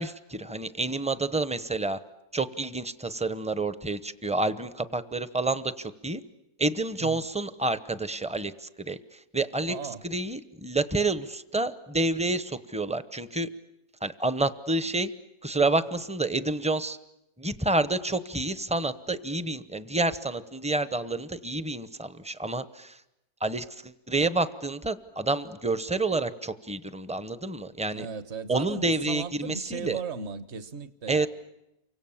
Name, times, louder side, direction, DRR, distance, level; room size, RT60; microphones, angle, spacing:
voice 1, 0.0-2.0 2.3-6.2 6.6-9.8 10.0-13.5 14.0-15.1 15.4-17.0 17.4-23.0 23.4-28.1 28.5-30.0 31.1-31.3, right 2 dB, 5° right, 0.6 m, -29 dB
voice 2, 9.7-10.0 27.9-31.3, right 6 dB, 50° right, 1.3 m, -37 dB
29.5 x 24.5 x 7.3 m
omnidirectional pair, 1.6 m